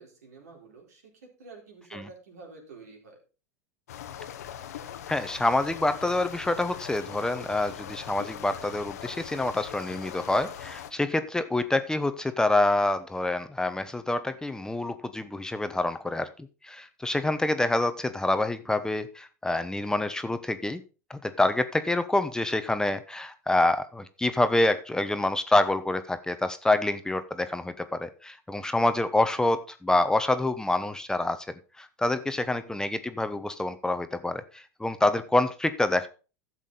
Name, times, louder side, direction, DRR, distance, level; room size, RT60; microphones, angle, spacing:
voice 1, 0.0-3.2 32.3-32.9, right 4 dB, 80° right, 1 dB, 3.9 m, -49 dB
sound 1, 3.9-10.9, left 10 dB, 75° left, 1.0 m, -41 dB
voice 2, 5.1-16.3 16.6-20.8 21.1-31.4 31.8-36.1, left 2 dB, 10° left, 10 dB, 0.9 m, -27 dB
12.0 x 7.5 x 4.1 m, 0.34 s
hypercardioid pair, 90°, 9 cm